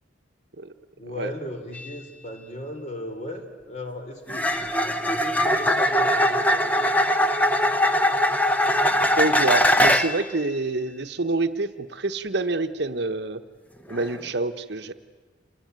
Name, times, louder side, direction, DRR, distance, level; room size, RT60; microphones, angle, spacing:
voice 1, 1.0-7.0, left 1 dB, 35° left, 5 dB, 3.2 m, -36 dB
sound 1, 1.7-1.9 4.3-10.3 13.9-14.2, equal, 10° left, 0.9 m, -21 dB
voice 2, 9.2-13.4 13.9-14.9, right 2 dB, 60° right, 9 dB, 1.0 m, -27 dB
27.0 x 19.5 x 9.4 m, 1.4 s
head